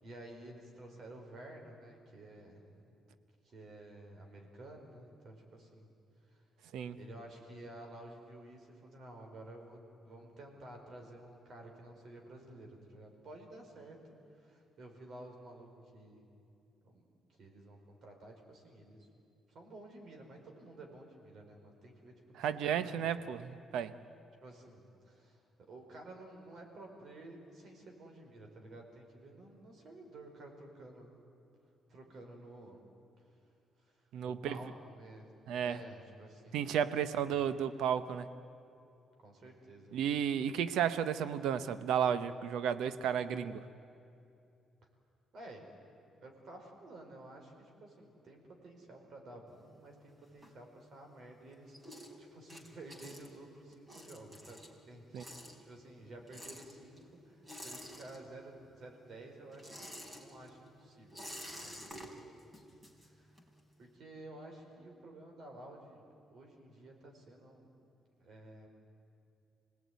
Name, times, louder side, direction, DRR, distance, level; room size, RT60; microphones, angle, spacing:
voice 1, 0.0-2.6 3.4-5.9 6.3-6.4 7.0-16.2 16.8-17.0 17.3-19.1 19.5-23.2 24.4-25.4 25.7-31.1 31.9-32.8 33.2-33.3 33.8-34.0 34.2-35.3 35.6-36.6 39.2-40.0 45.3-45.7 46.2-63.4 63.8-66.0 66.3-67.7 68.2-68.7, right 1 dB, 60° right, 2 dB, 4.9 m, -52 dB
voice 2, 22.4-23.9 34.1-34.6 35.5-35.8 36.5-38.3 39.9-43.6 55.1-55.2, right 8 dB, 85° right, 13 dB, 0.9 m, -33 dB
sound 1, 49.5-51.1 51.4-58.6 58.9-63.6, equal, 15° right, 3.8 m, -51 dB
26.0 x 18.5 x 9.5 m, 2.7 s
cardioid pair, 90°, 0 cm